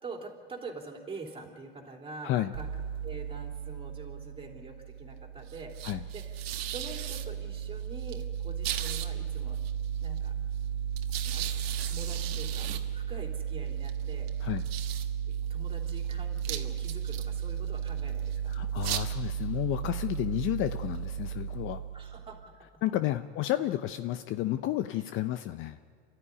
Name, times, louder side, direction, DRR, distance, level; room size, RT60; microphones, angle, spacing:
voice 1, 0.0-2.7 3.0-6.4 6.7-9.6 10.0-10.3 11.2-14.3 15.3-18.7 21.9-22.8, right 3 dB, 20° right, 1 dB, 3.3 m, -45 dB
sound 1, 2.5-22.4, right 9 dB, 80° right, 1.7 m, -34 dB
voice 2, 18.5-21.8 22.8-25.8, left 14 dB, 40° left, 11 dB, 0.7 m, -31 dB
27.0 x 13.0 x 9.8 m, 2.1 s
supercardioid pair, 120°, 30 cm